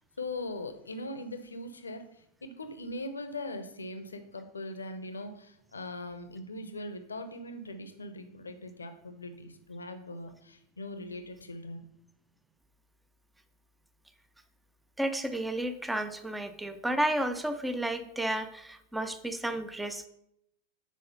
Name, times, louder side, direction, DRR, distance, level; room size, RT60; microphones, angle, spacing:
voice 1, 0.2-2.1 2.4-11.9, left 1 dB, 75° left, 9 dB, 0.8 m, -40 dB
voice 2, 15.0-20.1, right 1 dB, 5° right, 10 dB, 0.6 m, -32 dB
6.4 x 4.8 x 5.6 m, 0.77 s
figure-of-eight pair, 90°, 0 cm